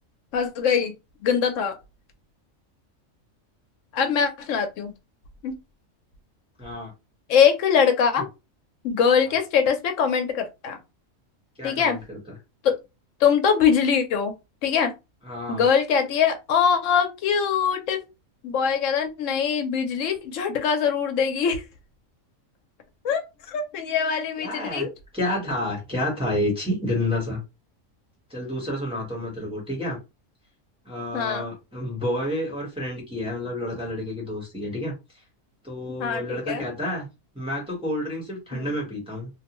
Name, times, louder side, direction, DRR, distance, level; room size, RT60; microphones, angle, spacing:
voice 1, 0.3-0.9 1.2-1.7 3.9-4.9 5.4-5.5 7.3-8.3 8.8-10.8 11.6-12.0 12.6-12.7 13.2-14.3 14.6-14.9 15.5-18.0 18.4-21.6 23.0-24.9 31.1-31.5 36.0-36.6 38.5-38.7, left 7 dB, 70° left, 1.0 m, -22 dB
voice 2, 6.6-6.9 11.6-12.2 15.2-15.6 24.4-24.9 25.1-27.4 28.3-30.0 30.8-34.9 35.6-37.1 37.3-39.3, left 1 dB, 5° right, 1.0 m, -29 dB
2.7 x 2.2 x 2.9 m
omnidirectional pair, 1.4 m